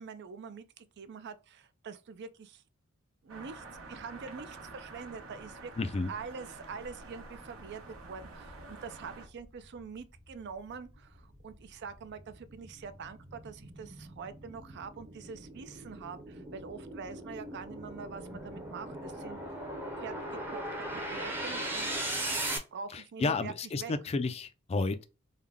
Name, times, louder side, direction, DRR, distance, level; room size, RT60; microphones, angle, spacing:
voice 1, 0.0-2.6 3.2-5.7 6.1-19.5 20.0-21.9 22.7-23.5 23.8-23.9, right 5 dB, 55° right, 0.4 m, -45 dB
sound 1, 3.3-9.3, right 3 dB, 75° right, 1.1 m, -48 dB
voice 2, 5.8-6.1 22.9-25.0, left 3 dB, 30° left, 0.4 m, -32 dB
sound 2, 8.5-22.6, right 1 dB, 10° right, 0.7 m, -39 dB
3.6 x 2.2 x 3.3 m
head